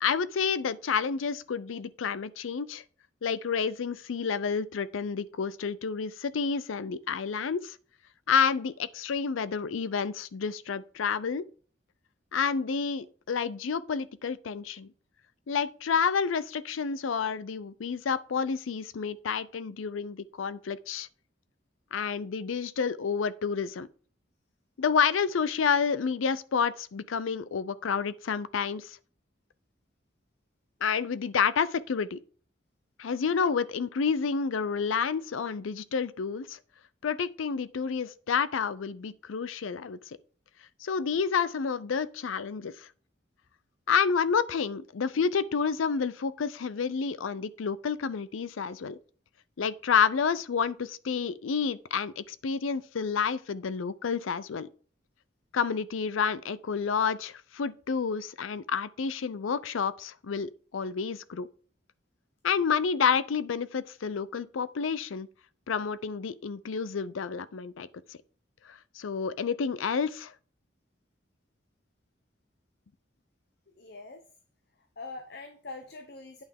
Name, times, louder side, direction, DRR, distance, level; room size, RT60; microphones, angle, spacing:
voice 1, 0.0-2.8 3.2-7.8 8.3-11.5 12.3-14.9 15.5-21.1 21.9-23.9 24.8-29.0 30.8-32.2 33.0-36.6 37.0-40.2 40.8-42.9 43.9-49.0 49.6-54.7 55.5-61.5 62.4-65.3 65.7-68.2 68.7-70.3, left 6 dB, 90° left, 0.5 m, -29 dB
voice 2, 73.8-74.2 75.0-76.4, left 3 dB, 55° left, 0.8 m, -43 dB
8.7 x 5.7 x 3.5 m
head